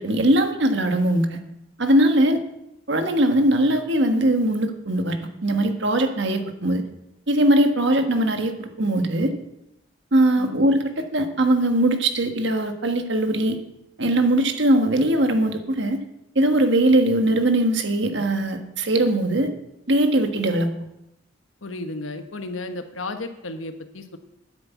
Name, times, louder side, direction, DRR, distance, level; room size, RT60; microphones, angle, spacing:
voice 1, 0.0-1.4 1.8-2.4 2.9-6.8 7.3-9.3 10.1-10.8 11.1-13.6 14.0-16.0 16.3-19.5 19.9-20.7, right 1 dB, 65° right, 6 dB, 1.5 m, -20 dB
voice 2, 21.6-24.2, left 2 dB, 85° left, 8 dB, 1.2 m, -33 dB
9.8 x 8.2 x 8.2 m, 0.87 s
head